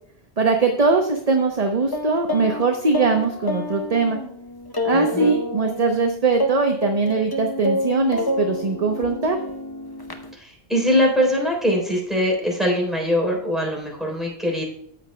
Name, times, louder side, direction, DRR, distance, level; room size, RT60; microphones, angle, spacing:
voice 1, 0.4-4.2 4.8-9.4, right 4 dB, 40° right, 4 dB, 0.9 m, -21 dB
sound 1, 1.9-6.0 6.4-10.3, left 1 dB, 25° left, 0.8 m, -28 dB
voice 2, 4.9-5.4 10.4-14.6, equal, ahead, -1 dB, 3.6 m, -22 dB
13.5 x 8.5 x 2.2 m, 0.65 s
omnidirectional pair, 1.1 m